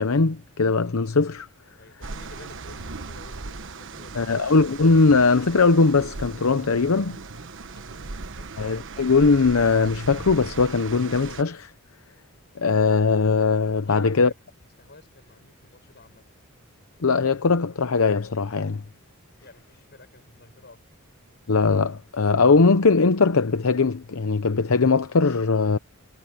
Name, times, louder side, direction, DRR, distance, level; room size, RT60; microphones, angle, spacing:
voice 1, 0.0-1.5 4.1-7.2 8.6-11.7 12.6-14.3 17.0-18.8 21.5-25.8, left 4 dB, 70° left, 0.8 m, -20 dB
voice 2, 1.8-4.4 7.9-8.1 8.4-8.5 13.8-14.3 14.8-16.2 19.4-20.8, left 2 dB, 50° left, 7.1 m, -49 dB
sound 1, 2.0-11.4, right 3 dB, 65° right, 1.2 m, -38 dB
head